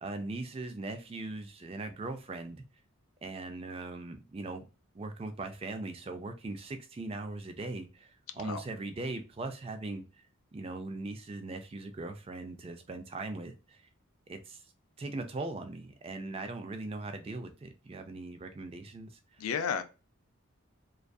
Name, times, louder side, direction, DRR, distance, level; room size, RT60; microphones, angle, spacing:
voice 1, 0.0-2.6 3.2-4.6 4.9-10.0 10.5-13.8 14.3-14.6 15.0-19.1, right 2 dB, 25° right, 0.3 m, -40 dB
voice 2, 19.4-19.8, left 6 dB, 85° left, 0.4 m, -32 dB
2.5 x 2.4 x 2.2 m
head